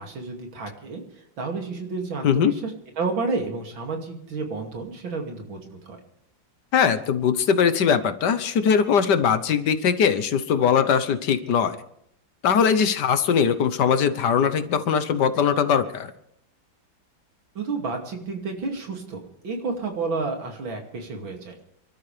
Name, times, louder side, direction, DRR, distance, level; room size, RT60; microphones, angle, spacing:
voice 1, 0.0-6.0 17.5-21.6, right 4 dB, 80° right, 3 dB, 3.3 m, -31 dB
voice 2, 6.7-11.8 12.4-16.1, left 7 dB, 65° left, 11 dB, 1.5 m, -21 dB
28.5 x 12.5 x 3.4 m, 0.73 s
omnidirectional pair, 2.1 m